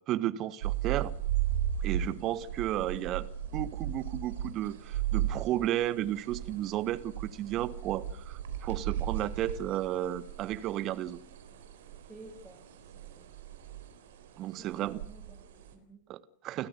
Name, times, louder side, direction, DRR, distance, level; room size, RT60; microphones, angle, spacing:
voice 1, 0.1-1.1 1.8-11.2 14.4-15.0 16.1-16.7, right 13 dB, 35° right, 1.7 m, -33 dB
sound 1, 0.6-15.7, right 11 dB, 55° right, 3.8 m, -36 dB
voice 2, 12.1-13.3 14.4-16.0, right 2 dB, 5° right, 6.1 m, -53 dB
30.0 x 14.5 x 9.6 m
figure-of-eight pair, 90°, 0 cm